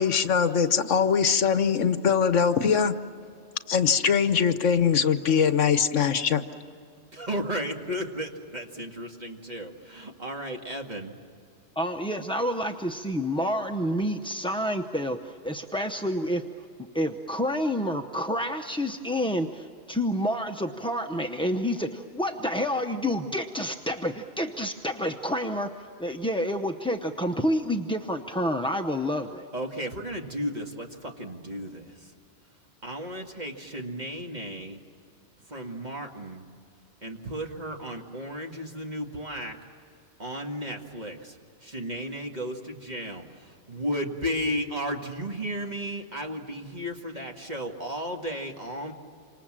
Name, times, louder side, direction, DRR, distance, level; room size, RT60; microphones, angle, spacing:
voice 1, 0.0-2.9 3.7-6.4, left 7 dB, 70° left, 11 dB, 1.3 m, -22 dB
voice 2, 7.1-11.2 29.5-32.1 32.8-34.8 35.5-36.4 37.0-39.6 40.2-43.2 43.7-48.9, equal, 35° right, 2 dB, 2.1 m, -34 dB
voice 3, 11.8-16.5 16.9-29.5, equal, 5° left, 4 dB, 0.5 m, -29 dB
28.0 x 26.0 x 7.5 m, 2.4 s
omnidirectional pair, 1.3 m